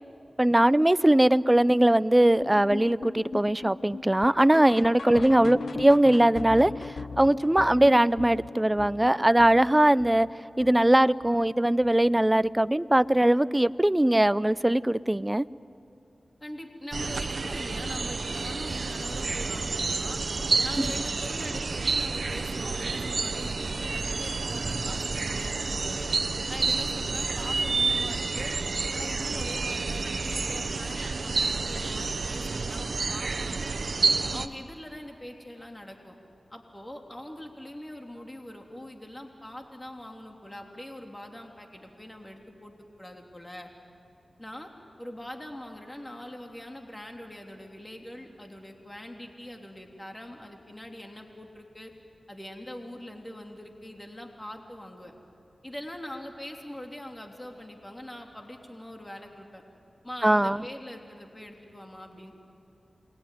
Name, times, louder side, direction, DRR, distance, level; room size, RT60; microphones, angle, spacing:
voice 1, 0.4-10.3 10.6-15.4 60.2-60.6, right 1 dB, 20° right, 17 dB, 0.6 m, -21 dB
sound 1, 2.4-11.5 11.8-12.1 12.4-12.5 13.0-13.1 13.6-13.7, left 4 dB, 80° left, 0.8 m, -40 dB
voice 2, 5.1-5.4 16.4-20.2 20.6-26.1 26.5-28.5 28.9-33.7 34.3-36.1 36.5-43.7 44.4-44.7 45.0-51.9 52.3-55.1 55.6-59.6 60.0-62.3, left 1 dB, 20° left, 2 dB, 3.3 m, -42 dB
sound 2, 16.9-34.5, right 4 dB, 70° right, 1.0 m, -29 dB
28.5 x 21.5 x 9.4 m, 2.7 s
cardioid pair, 45°, 0 cm